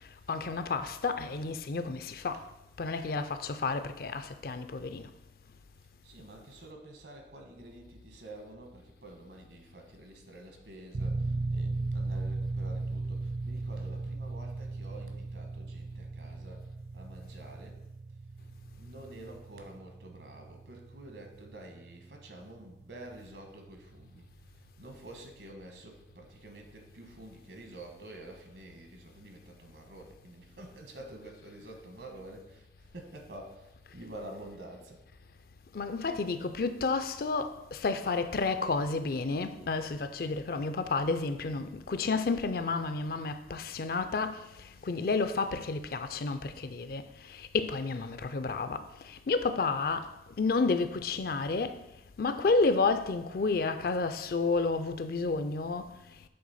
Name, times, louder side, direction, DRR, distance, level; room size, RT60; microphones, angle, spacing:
voice 1, 0.3-2.4 2.8-5.1 35.7-44.4 44.8-47.0 47.3-50.1 50.4-51.8 52.2-55.9, left 3 dB, 55° left, 0.4 m, -31 dB
voice 2, 2.8-3.2 6.0-17.8 18.8-24.3 24.5-35.0, right 1 dB, 70° right, 1.2 m, -49 dB
sound 1, 10.9-25.4, right 3 dB, 40° right, 0.3 m, -38 dB
7.8 x 3.3 x 5.5 m
head